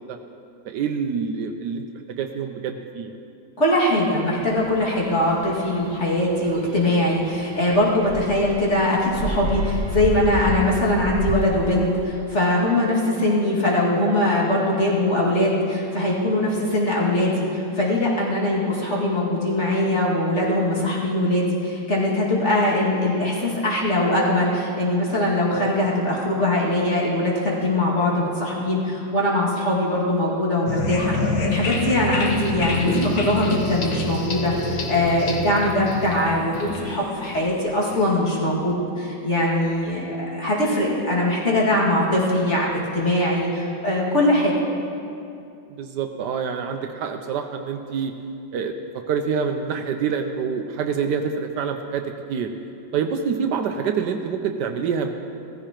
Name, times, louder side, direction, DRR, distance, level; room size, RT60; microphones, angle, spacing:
voice 1, 0.6-3.1 45.7-48.1 48.5-52.5 52.9-55.1, right 6 dB, 80° right, 5 dB, 1.3 m, -26 dB
voice 2, 3.6-42.7 42.9-44.5, left 1 dB, 40° left, -5 dB, 2.5 m, -21 dB
sound 1, 4.4-12.0, right 2 dB, 60° right, 1.1 m, -30 dB
sound 2, 30.7-38.2, left 2 dB, 85° left, 1.8 m, -28 dB
16.5 x 14.5 x 3.0 m, 2.6 s
omnidirectional pair, 1.9 m